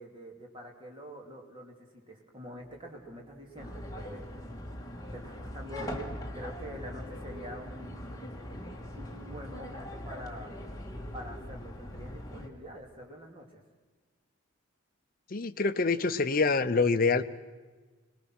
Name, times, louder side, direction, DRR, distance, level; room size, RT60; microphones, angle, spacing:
voice 1, 0.0-4.3 5.1-8.3 8.9-10.5 11.1-13.6, equal, 25° right, 0 dB, 2.7 m, -45 dB
sound 1, 2.5-9.4, equal, 45° right, 6.9 m, -59 dB
sound 2, 3.6-12.5, equal, 15° left, 1.6 m, -41 dB
voice 2, 15.3-17.2, left 4 dB, 45° left, 12 dB, 0.6 m, -26 dB
22.5 x 19.5 x 6.2 m, 1.4 s
head